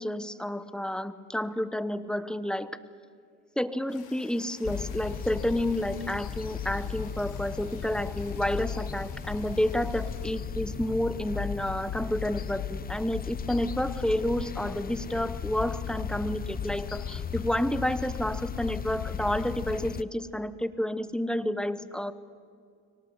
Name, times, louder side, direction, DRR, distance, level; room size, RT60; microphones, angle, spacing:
voice 1, 0.0-2.8 3.6-22.1, left 1 dB, ahead, 15 dB, 1.0 m, -30 dB
sound 1, 3.9-10.3, left 5 dB, 60° left, 6.8 m, -54 dB
sound 2, 4.6-20.0, left 7 dB, 25° left, 0.7 m, -36 dB
24.5 x 18.0 x 8.1 m, 2.3 s
supercardioid pair, 90°, 34 cm